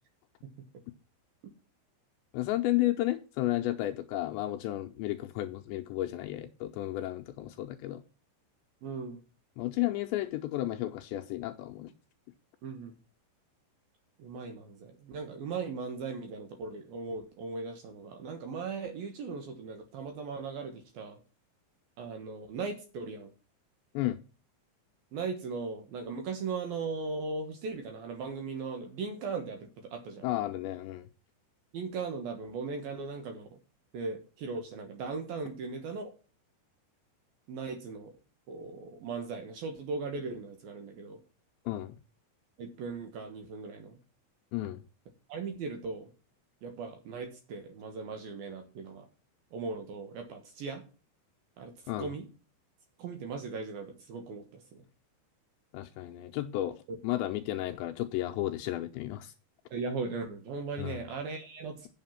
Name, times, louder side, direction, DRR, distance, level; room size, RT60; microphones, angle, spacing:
voice 1, 2.3-8.0 9.6-11.9 23.9-24.2 30.2-31.1 41.7-41.9 44.5-44.8 51.9-52.1 55.7-59.3 60.8-61.0, left 15 dB, 80° left, 2.7 m, -33 dB
voice 2, 8.8-9.2 12.6-12.9 14.2-21.2 22.0-23.3 25.1-30.3 31.7-33.6 33.9-36.1 37.5-38.1 38.5-41.2 42.6-44.0 45.3-46.1 46.6-49.1 49.5-50.8 51.6-51.7 52.0-52.3 53.0-54.8 59.7-61.9, right 4 dB, 65° right, 2.5 m, -38 dB
8.5 x 7.4 x 5.7 m
omnidirectional pair, 5.6 m